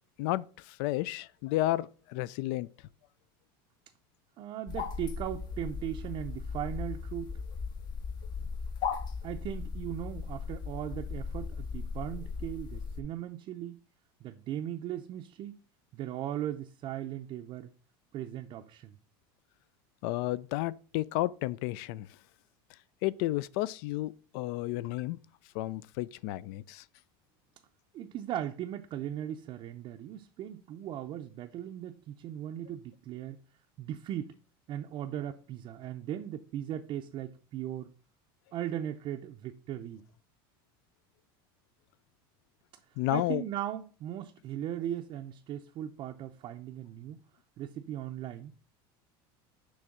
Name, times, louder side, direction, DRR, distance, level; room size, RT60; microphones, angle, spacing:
voice 1, 0.2-2.7 20.0-22.1 23.0-25.2 25.5-26.8 43.0-43.4, left 17 dB, 70° left, 0.4 m, -32 dB
voice 2, 4.4-7.3 9.2-13.8 14.2-15.6 15.9-17.7 18.1-18.9 27.9-33.4 33.8-34.4 34.7-37.9 38.5-40.0 43.1-47.2 47.6-48.5, right 11 dB, 40° right, 0.5 m, -38 dB
sound 1, 4.7-13.0, left 5 dB, 35° left, 0.7 m, -37 dB
6.3 x 3.3 x 5.9 m
supercardioid pair, 130°, 12 cm